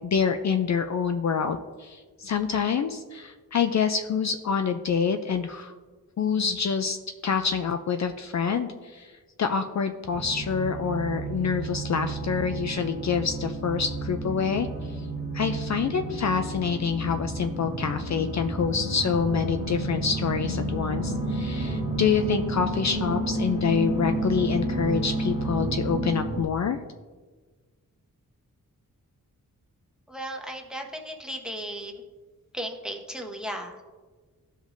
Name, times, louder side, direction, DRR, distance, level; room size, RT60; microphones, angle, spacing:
voice 1, 0.0-5.7 6.2-7.0 7.2-9.1 9.4-15.1 15.3-26.8, left 6 dB, 55° left, 7 dB, 0.4 m, -27 dB
sound 1, 10.1-26.4, right 2 dB, 20° right, 1.7 m, -31 dB
voice 2, 30.1-31.9 32.5-33.8, equal, ahead, 2 dB, 1.0 m, -35 dB
14.5 x 5.1 x 2.6 m, 1.4 s
wide cardioid pair, 120°, 34 cm